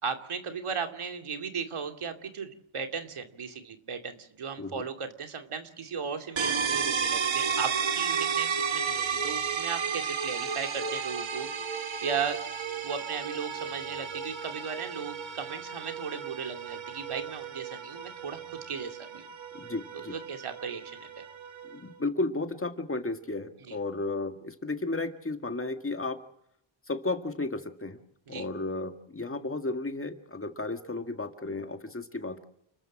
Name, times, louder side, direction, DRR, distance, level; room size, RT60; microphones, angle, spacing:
voice 1, 0.0-12.4 12.8-19.2 19.9-21.2 23.6-23.8 28.3-28.5, right 6 dB, 85° right, 5 dB, 2.7 m, -36 dB
sound 1, 6.4-21.9, right 6 dB, 65° right, 1.7 m, -33 dB
voice 2, 19.5-20.1 21.7-26.2 26.9-28.0 28.3-32.4, left 2 dB, 25° left, 7 dB, 2.0 m, -33 dB
30.0 x 14.0 x 7.5 m, 0.76 s
wide cardioid pair, 130°, 49 cm